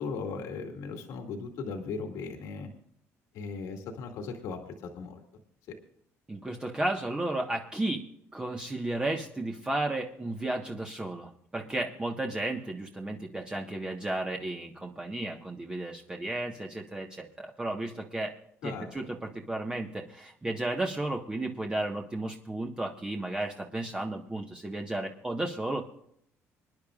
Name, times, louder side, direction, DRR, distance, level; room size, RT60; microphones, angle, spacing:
voice 1, 0.0-2.7 3.3-5.2 18.6-18.9, left 4 dB, 80° left, 3 dB, 2.2 m, -37 dB
voice 2, 6.3-8.1 8.3-18.3 18.6-25.9, right 2 dB, 15° right, 1 dB, 1.4 m, -33 dB
26.5 x 10.5 x 2.5 m, 0.69 s
cardioid pair, 110°, 6 cm